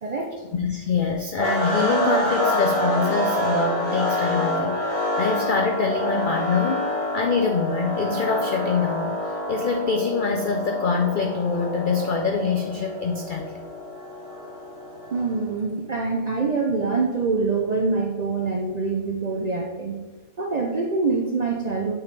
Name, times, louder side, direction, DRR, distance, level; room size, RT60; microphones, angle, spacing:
voice 1, 0.0-0.4 15.1-20.0 20.4-21.9, right 4 dB, 85° right, 0 dB, 0.3 m, -25 dB
voice 2, 0.5-13.7, left 5 dB, 80° left, 3 dB, 0.4 m, -25 dB
sound 1, 1.4-15.5, equal, 40° left, 2.5 m, -27 dB
8.6 x 3.6 x 3.2 m, 1.2 s
omnidirectional pair, 1.5 m